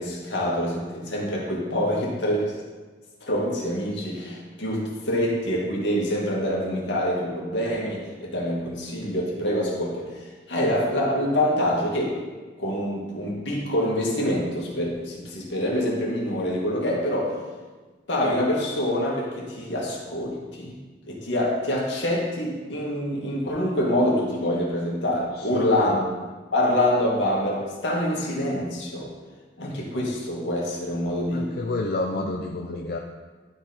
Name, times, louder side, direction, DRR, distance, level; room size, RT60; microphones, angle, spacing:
voice 1, 0.0-2.5 3.2-12.2 12.6-17.4 18.1-20.8 21.1-29.1 29.6-31.6 32.1-32.2 32.7-32.9, left 1 dB, 85° left, -3 dB, 2.0 m, -26 dB
voice 2, 25.4-26.0 31.3-33.0, left 2 dB, 55° left, 2 dB, 0.4 m, -30 dB
11.5 x 4.1 x 4.3 m, 1.3 s
head